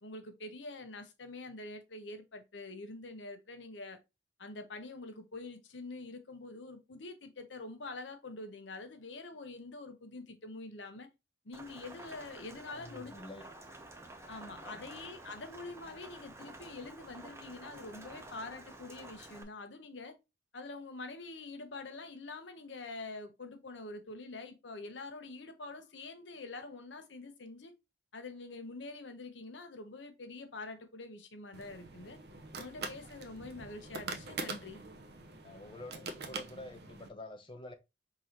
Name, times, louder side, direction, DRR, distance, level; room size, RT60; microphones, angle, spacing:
voice 1, 0.0-4.0 4.4-11.1 11.4-13.1 14.3-20.1 20.5-27.7 28.1-32.2 32.6-34.8, left 3 dB, 75° left, 1.0 m, -46 dB
Rain, 11.5-19.4, right 2 dB, 15° right, 0.8 m, -51 dB
voice 2, 12.7-13.5 14.6-14.9 35.4-37.7, left 1 dB, 30° left, 0.7 m, -48 dB
sound 1, 31.5-37.1, right 3 dB, 65° right, 0.7 m, -44 dB
4.7 x 3.9 x 2.8 m
head